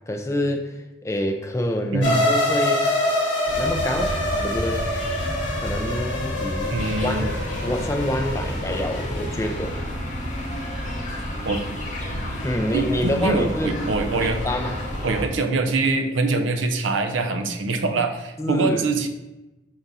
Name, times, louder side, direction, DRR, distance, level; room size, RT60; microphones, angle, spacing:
voice 1, 0.1-0.7 1.0-2.9 3.6-4.9 5.6-7.4 7.6-9.8 12.4-13.8 14.2-14.7 18.4-18.8, left 1 dB, 15° left, 3 dB, 0.3 m, -27 dB
sound 1, 2.0-9.9, left 1 dB, 65° left, 1.1 m, -26 dB
sound 2, 3.5-15.3, equal, 40° left, 0.8 m, -30 dB
voice 2, 6.7-7.3 11.4-11.6 12.7-14.4 15.0-19.1, right 3 dB, 70° right, 6 dB, 0.4 m, -24 dB
5.0 x 2.4 x 4.0 m, 0.99 s
head